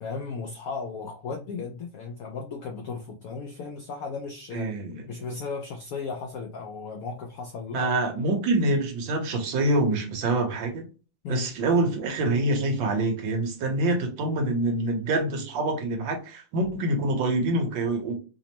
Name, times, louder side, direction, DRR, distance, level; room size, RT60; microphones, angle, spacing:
voice 1, 0.0-4.7 5.1-7.9 11.2-11.5, left 4 dB, 90° left, 0.7 m, -35 dB
voice 2, 4.5-5.1 7.7-10.8 11.3-18.2, right 2 dB, 75° right, 1.6 m, -26 dB
5.0 x 2.0 x 2.9 m
omnidirectional pair, 2.1 m